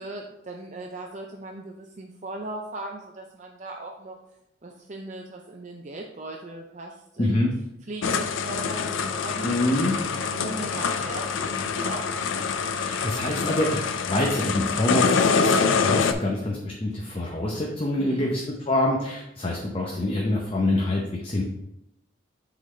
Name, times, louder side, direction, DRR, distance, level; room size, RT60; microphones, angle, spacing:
voice 1, 0.0-4.2 4.6-7.4 7.9-12.1 18.0-18.3, right 2 dB, 35° right, 1 dB, 0.5 m, -38 dB
voice 2, 7.2-7.5 9.4-9.9 12.8-18.4 18.7-21.4, left 1 dB, 30° left, -1 dB, 0.7 m, -26 dB
sound 1, 8.0-16.1, left 5 dB, 80° left, 0.4 m, -25 dB
8.1 x 3.9 x 3.2 m, 0.88 s
head